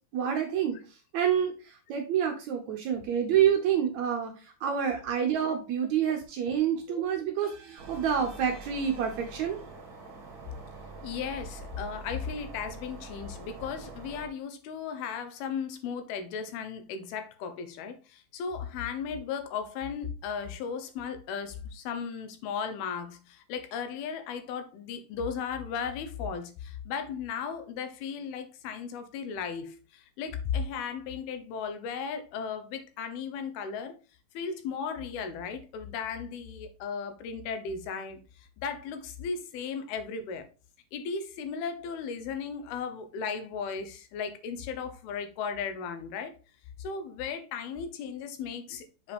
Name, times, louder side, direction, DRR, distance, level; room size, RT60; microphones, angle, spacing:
voice 1, 0.1-9.6, right 8 dB, 70° right, 1.8 m, -28 dB
sound 1, 7.8-14.3, right 3 dB, 40° right, 2.3 m, -45 dB
voice 2, 11.0-34.0 34.3-40.4 40.9-46.3 46.8-49.1, left 6 dB, 85° left, 2.9 m, -36 dB
6.9 x 5.0 x 3.5 m
omnidirectional pair, 4.3 m